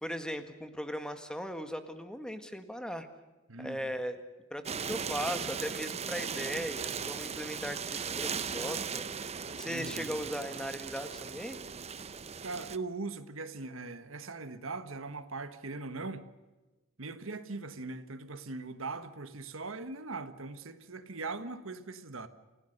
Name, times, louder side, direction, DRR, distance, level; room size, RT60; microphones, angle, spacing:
voice 1, 0.0-3.1 3.6-4.2 4.5-9.2 9.5-11.6, equal, 5° left, 1.7 m, -38 dB
voice 2, 3.5-3.9 9.7-10.1 12.4-16.3 17.0-22.3, right 3 dB, 80° right, 1.5 m, -40 dB
sound 1, 4.7-12.8, right 6 dB, 30° right, 0.7 m, -38 dB
29.0 x 17.0 x 6.6 m
head